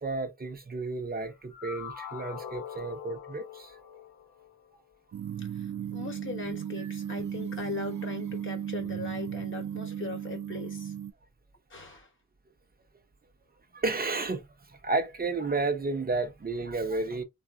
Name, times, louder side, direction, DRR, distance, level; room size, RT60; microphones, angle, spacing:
voice 1, 0.0-3.8 13.7-17.2, right 3 dB, 30° right, 0.6 m, -32 dB
sound 1, 1.2-4.7, left 8 dB, 70° left, 0.7 m, -43 dB
sound 2, 5.1-11.1, right 9 dB, 70° right, 0.5 m, -35 dB
voice 2, 5.9-10.9 11.7-12.1, left 3 dB, 40° left, 0.9 m, -39 dB
3.6 x 2.2 x 2.4 m
wide cardioid pair, 160°, 31 cm